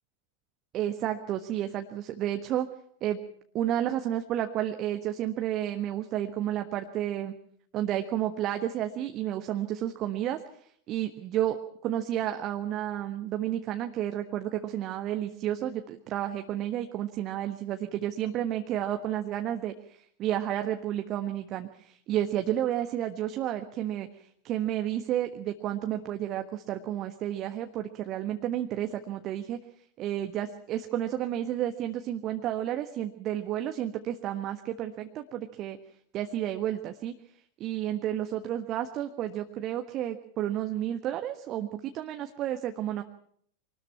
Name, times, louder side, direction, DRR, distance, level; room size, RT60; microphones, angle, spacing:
voice 1, 0.7-2.7 3.0-3.2 3.5-7.3 7.7-29.6 30.0-35.8 36.1-37.1 37.6-43.0, right 11 dB, 35° right, 7 dB, 1.4 m, -31 dB
25.0 x 19.5 x 5.8 m, 0.64 s
figure-of-eight pair, 90°, 0 cm